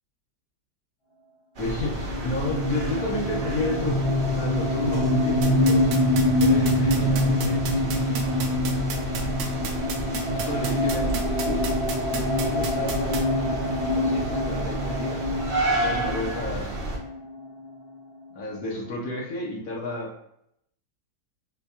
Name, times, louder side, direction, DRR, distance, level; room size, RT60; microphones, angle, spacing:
sound 1, 1.5-17.0, right 1 dB, 55° right, 0.5 m, -31 dB
voice 1, 1.6-5.9 6.4-7.9 10.3-11.7 12.4-13.2 13.9-15.3 15.7-16.8 18.3-20.2, left 2 dB, 60° left, -3 dB, 1.1 m, -32 dB
sound 2, 2.0-17.6, left 1 dB, 80° left, 1.5 m, -25 dB
sound 3, 5.4-13.2, right 5 dB, 70° right, 1.0 m, -31 dB
4.4 x 2.2 x 2.7 m, 0.75 s
omnidirectional pair, 1.8 m